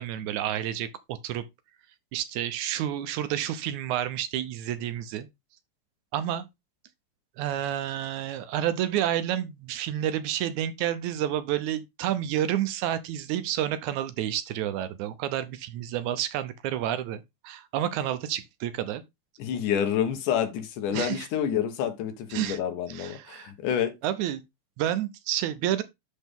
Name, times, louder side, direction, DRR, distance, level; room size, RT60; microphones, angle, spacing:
voice 1, 0.0-1.4 2.1-5.3 6.1-6.4 7.4-19.0 20.9-21.3 22.3-22.6 22.9-23.5 24.0-24.4 24.8-25.8, right 11 dB, 75° right, 2.1 m, -30 dB
voice 2, 19.4-23.9, left 9 dB, 80° left, 2.6 m, -28 dB
12.0 x 4.0 x 3.6 m
omnidirectional pair, 3.6 m